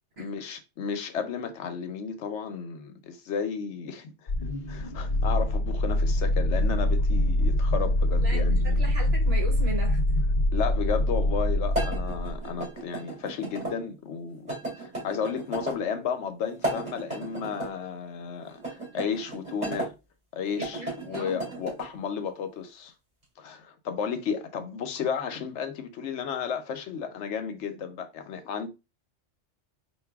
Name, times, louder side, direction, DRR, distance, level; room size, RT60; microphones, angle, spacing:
voice 1, 0.2-8.8 10.5-14.5 14.8-19.9 20.3-22.9 23.4-28.7, left 6 dB, 70° left, 0.9 m, -33 dB
sound 1, 4.3-12.5, left 1 dB, 50° left, 0.6 m, -24 dB
voice 2, 8.2-10.0 20.5-21.4, right 1 dB, 55° right, 1.5 m, -37 dB
sound 2, 11.7-13.7 14.5-15.8 16.5-17.7 18.6-19.9 20.5-21.9, right 1 dB, 35° right, 2.7 m, -34 dB
4.7 x 2.5 x 3.3 m
omnidirectional pair, 1.3 m